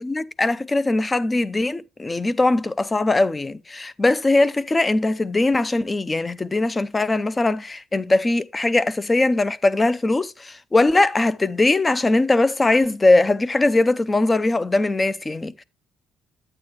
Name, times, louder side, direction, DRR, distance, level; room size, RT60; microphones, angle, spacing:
voice 1, 0.0-15.6, left 2 dB, 20° left, 0.5 m, -20 dB
8.9 x 8.7 x 3.0 m
cardioid pair, 125°, 0 cm